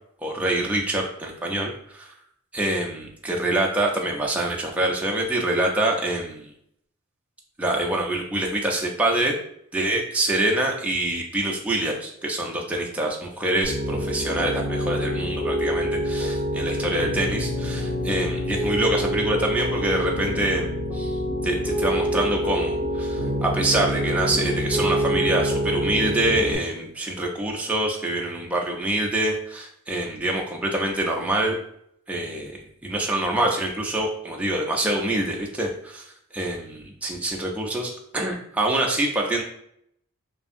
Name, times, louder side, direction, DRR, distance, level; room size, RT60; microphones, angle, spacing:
voice 1, 0.2-2.1 2.5-6.5 7.6-9.3 9.7-20.7 20.9-31.6 32.1-36.0 36.3-39.4, right 1 dB, 5° right, -1 dB, 0.3 m, -25 dB
Piano, 13.6-26.5, equal, 25° left, 0.8 m, -26 dB
2.6 x 2.5 x 2.4 m, 0.72 s
head